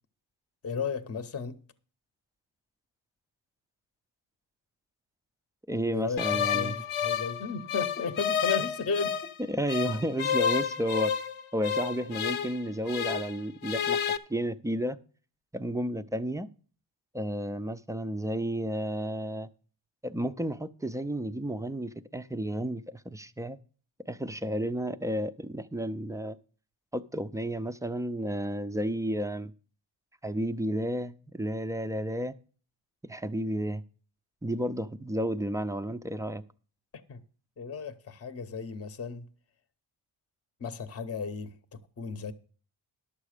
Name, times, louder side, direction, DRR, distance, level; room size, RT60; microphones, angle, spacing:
voice 1, 0.6-1.6 5.9-9.2 37.1-37.2 37.6-39.3 40.6-42.3, left 5 dB, 30° left, 0.8 m, -34 dB
voice 2, 5.7-6.7 9.5-11.1 11.5-15.0 15.5-16.5 17.1-19.5 20.0-23.6 24.1-26.4 26.9-29.5 30.2-32.3 33.0-33.8 34.4-36.4, equal, 5° right, 0.4 m, -32 dB
sound 1, 6.2-9.4 9.7-13.4 13.6-14.2, left 8 dB, 80° left, 0.8 m, -30 dB
11.5 x 7.1 x 4.9 m
cardioid pair, 90°, 48 cm